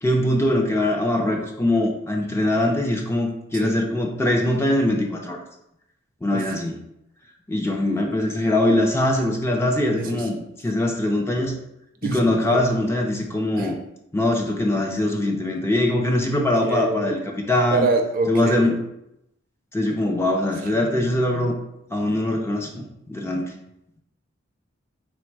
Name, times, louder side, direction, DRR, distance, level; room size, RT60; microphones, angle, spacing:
voice 1, 0.0-5.4 6.2-6.8 7.5-10.4 10.6-11.5 12.0-13.8 14.1-17.9 18.3-18.8 19.7-21.5 21.9-23.5, left 1 dB, 15° left, 1 dB, 0.4 m, -22 dB
voice 2, 12.0-12.6 13.6-13.7 16.6-17.2 17.7-18.7, right 3 dB, 45° right, 4 dB, 0.5 m, -25 dB
4.0 x 2.1 x 4.5 m, 0.83 s
head